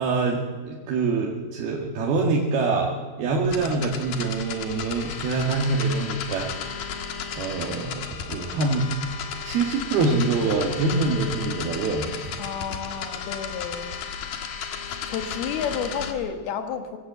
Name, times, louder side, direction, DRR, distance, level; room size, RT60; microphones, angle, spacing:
voice 1, 0.0-2.9 3.2-6.8 7.4-8.9 9.4-12.3, right 3 dB, 85° right, -2 dB, 3.8 m, -25 dB
sound 1, 3.5-16.1, left 7 dB, 70° left, 3.2 m, -34 dB
voice 2, 12.4-14.0 15.1-17.0, left 7 dB, 85° left, 7 dB, 3.3 m, -31 dB
24.0 x 17.5 x 8.1 m, 1.5 s
omnidirectional pair, 4.3 m